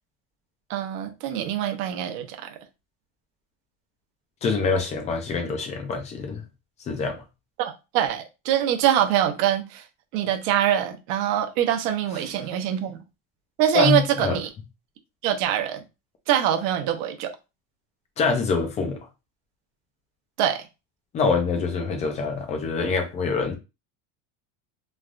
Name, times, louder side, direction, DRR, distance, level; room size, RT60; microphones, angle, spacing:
voice 1, 0.7-2.5 7.6-9.8 10.1-13.0 13.6-14.5 15.2-15.8 16.3-17.3 20.4-20.6, right 10 dB, 60° right, 0.7 m, -24 dB
voice 2, 4.4-6.4 6.8-7.2 13.7-14.4 18.2-19.0 21.1-23.6, left 4 dB, 20° left, 0.3 m, -25 dB
3.2 x 2.3 x 2.4 m
cardioid pair, 165°, 40 cm